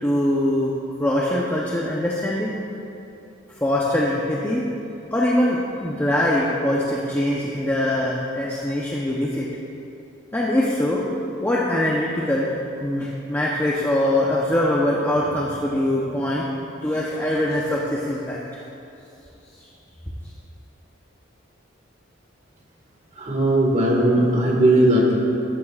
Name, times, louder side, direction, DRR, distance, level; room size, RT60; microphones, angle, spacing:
voice 1, 0.0-0.7 1.0-2.5 3.6-4.6 5.1-9.5 10.3-11.0 11.4-12.5 12.8-16.4 16.8-18.4, left 1 dB, 10° left, -5 dB, 0.8 m, -22 dB
voice 2, 23.2-25.2, right 1 dB, 35° right, -2 dB, 1.8 m, -18 dB
14.0 x 13.0 x 2.4 m, 2.8 s
head